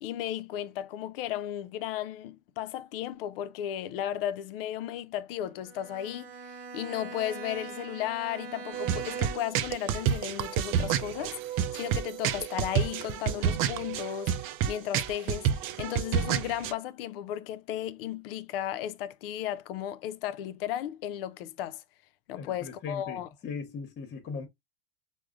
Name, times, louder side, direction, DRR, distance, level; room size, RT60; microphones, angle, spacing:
voice 1, 0.0-15.5 15.8-21.8 22.3-23.3, left 11 dB, 75° left, 0.5 m, -35 dB
Bowed string instrument, 5.6-9.7, right 5 dB, 75° right, 0.8 m, -42 dB
sound 1, 8.7-16.7, right 9 dB, 50° right, 0.5 m, -29 dB
voice 2, 22.3-24.5, left 5 dB, 35° left, 1.0 m, -39 dB
4.7 x 2.1 x 2.4 m
hypercardioid pair, 100°, 29 cm